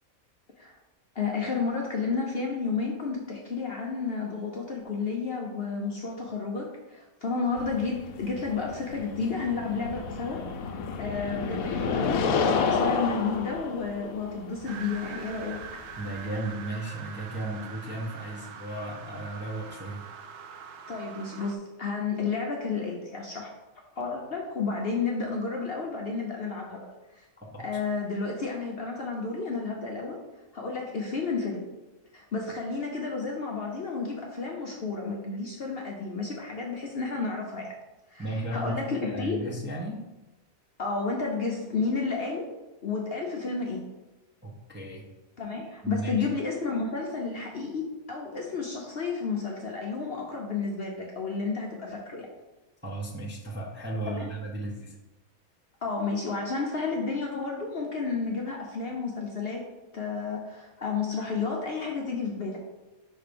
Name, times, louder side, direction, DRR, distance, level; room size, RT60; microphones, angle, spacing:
voice 1, 1.1-10.4 11.0-15.6 20.9-23.5 23.9-26.9 27.1-27.2 27.6-30.2 30.5-31.6 32.1-37.7 38.1-39.5 40.8-42.5 42.8-43.9 45.4-52.3 54.1-54.3 55.8-59.6 59.9-62.6, left 4 dB, 50° left, -1 dB, 0.9 m, -31 dB
sound 1, 7.6-16.4, left 5 dB, 75° left, 1.0 m, -30 dB
sound 2, 14.7-21.6, right 6 dB, 65° right, 0.7 m, -43 dB
voice 2, 16.0-20.0 27.4-27.6 38.2-40.0 44.4-45.0 45.8-46.3 52.8-55.0, right 1 dB, 10° right, -4 dB, 0.7 m, -35 dB
5.5 x 3.4 x 5.1 m, 1.1 s
omnidirectional pair, 1.5 m